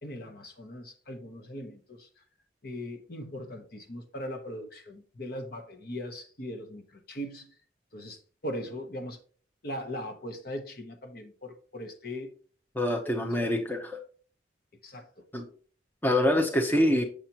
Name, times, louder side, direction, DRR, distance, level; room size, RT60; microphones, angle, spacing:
voice 1, 0.0-2.1 2.6-7.5 7.9-9.2 9.6-12.3 13.1-13.2 14.8-15.1, equal, 55° left, 5 dB, 1.2 m, -39 dB
voice 2, 12.8-13.9 15.3-15.5 16.0-17.0, left 1 dB, 10° left, 3 dB, 0.8 m, -25 dB
7.5 x 6.7 x 2.9 m, 0.43 s
head